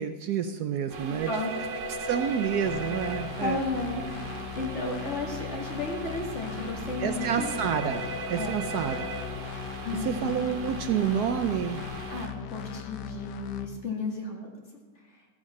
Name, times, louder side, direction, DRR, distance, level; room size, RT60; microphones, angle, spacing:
voice 1, 0.0-1.3 2.0-3.6 7.0-9.1 10.0-11.8, right 8 dB, 70° right, 8 dB, 1.0 m, -29 dB
sound 1, 0.9-12.3, right 2 dB, 90° right, 2.0 m, -37 dB
voice 2, 1.0-1.5 2.3-2.4 3.4-7.5 8.4-8.6 9.8-10.3 12.1-14.7 15.1-15.2, left 2 dB, 40° left, -2 dB, 2.6 m, -34 dB
sound 2, 2.7-13.7, left 12 dB, 75° left, 1.3 m, -39 dB
14.0 x 8.5 x 6.4 m, 1.4 s
omnidirectional pair, 1.9 m